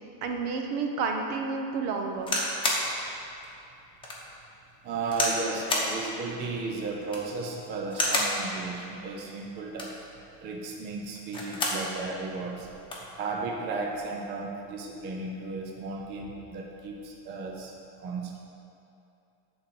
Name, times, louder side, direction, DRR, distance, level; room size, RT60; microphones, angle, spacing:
voice 1, 0.2-2.4, right 4 dB, 50° right, 3 dB, 1.1 m, -30 dB
sound 1, 2.2-2.9 3.4-3.5 4.0-4.2 5.1-5.4 5.7-5.9 7.0-7.3 7.9-8.4 9.6-10.0 11.1-11.8 12.3-12.4 12.6-13.1 13.9-14.2, left 2 dB, 10° left, 1.1 m, -29 dB
voice 2, 4.8-9.9 10.4-12.7 13.2-17.7 18.0-18.4, right 3 dB, 25° right, 0 dB, 0.4 m, -34 dB
11.0 x 4.0 x 7.4 m, 2.7 s
cardioid pair, 170°, 49 cm